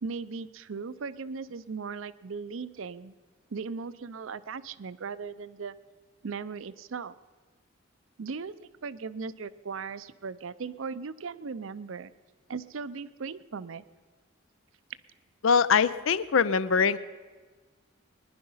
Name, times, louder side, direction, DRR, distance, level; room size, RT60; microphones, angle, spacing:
voice 1, 0.0-3.1 3.5-5.7 6.2-7.1 8.2-12.1 12.5-13.8, right 5 dB, 75° right, 15 dB, 0.5 m, -38 dB
voice 2, 15.4-17.0, left 6 dB, 75° left, 16 dB, 0.5 m, -23 dB
20.5 x 10.5 x 5.6 m, 1.4 s
head